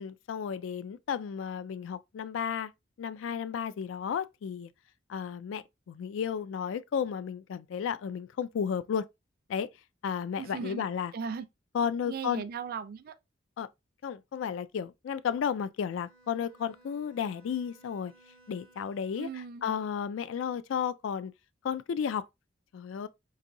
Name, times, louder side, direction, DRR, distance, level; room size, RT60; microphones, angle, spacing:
voice 1, 0.0-2.7 3.0-4.7 5.1-9.1 9.5-9.7 10.0-11.1 11.7-12.4 13.6-13.7 14.0-18.1 18.5-21.3 21.6-22.2 22.7-23.1, left 7 dB, 75° left, 0.3 m, -33 dB
voice 2, 10.4-10.9 11.1-11.5 12.1-13.1 19.2-19.7, right 6 dB, 50° right, 0.4 m, -37 dB
Bowed string instrument, 15.9-19.5, right 2 dB, 50° left, 1.1 m, -60 dB
4.0 x 2.6 x 2.5 m
head